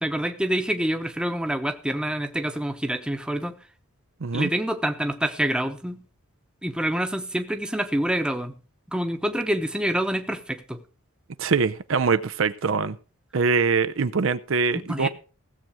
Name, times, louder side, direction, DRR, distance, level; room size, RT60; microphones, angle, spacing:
voice 1, 0.0-3.6 4.3-6.0 6.6-8.5 8.9-10.8 14.7-15.1, right 1 dB, 5° right, 0.9 m, -27 dB
voice 2, 4.2-4.5 11.4-13.0 13.3-15.1, right 5 dB, 65° right, 0.5 m, -23 dB
16.0 x 7.7 x 4.9 m
head